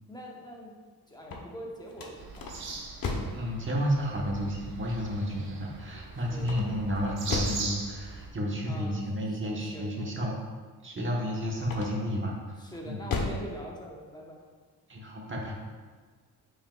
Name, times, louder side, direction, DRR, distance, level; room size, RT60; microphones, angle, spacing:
voice 1, 0.1-0.7 1.1-2.6 6.3-6.6 8.7-9.0 9.3-10.1 12.6-14.4, equal, 10° left, -2 dB, 0.9 m, -43 dB
sound 1, 1.1-3.5 6.4-7.7 11.6-12.2 12.7-13.5, left 3 dB, 60° left, 0.9 m, -34 dB
sound 2, 2.2-8.3, right 3 dB, 70° right, 1.1 m, -40 dB
voice 2, 3.3-10.3 10.8-12.4 12.8-13.0 14.9-15.5, equal, 30° right, -2 dB, 1.1 m, -31 dB
7.9 x 6.0 x 2.3 m, 1.5 s
wide cardioid pair, 155°, 39 cm